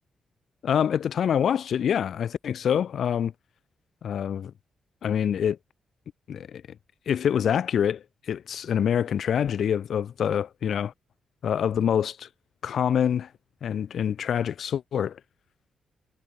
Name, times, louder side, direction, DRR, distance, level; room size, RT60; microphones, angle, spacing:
voice 1, 0.6-3.3 4.0-4.5 5.0-5.6 6.3-6.6 7.1-10.9 11.4-12.3 12.6-13.3 13.6-15.2, left 8 dB, 65° left, 1.3 m, -26 dB
cardioid pair, 120°, 0 cm